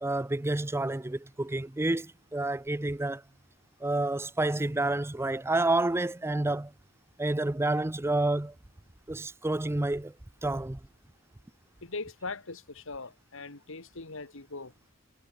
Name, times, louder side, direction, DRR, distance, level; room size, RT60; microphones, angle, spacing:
voice 1, 0.0-3.2 3.8-6.7 7.2-8.5 9.1-10.1 10.4-10.8, right 2 dB, 10° right, 0.5 m, -29 dB
voice 2, 11.8-14.7, left 3 dB, 65° left, 2.2 m, -40 dB
head